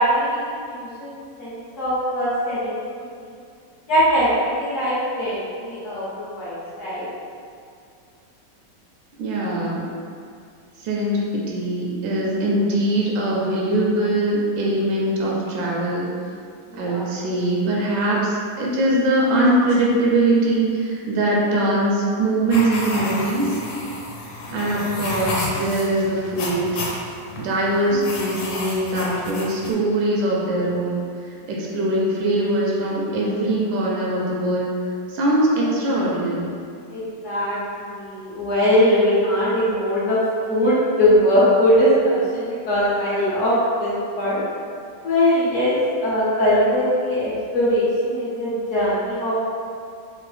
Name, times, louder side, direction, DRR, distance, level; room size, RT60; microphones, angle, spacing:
voice 1, 0.0-2.8 3.2-3.3 3.9-7.1 16.7-17.1 27.9-28.0 36.9-40.2 40.5-44.4 45.0-49.4, equal, 55° left, -9 dB, 1.0 m, -21 dB
voice 2, 9.2-9.8 10.8-16.1 16.7-23.6 24.5-26.9 27.4-31.1 31.5-34.7 35.1-36.5, right 1 dB, 90° right, -4 dB, 1.3 m, -22 dB
sound 1, 22.5-29.7, left 2 dB, 85° left, 1.3 m, -31 dB
3.5 x 2.0 x 3.2 m, 2.3 s
omnidirectional pair, 2.0 m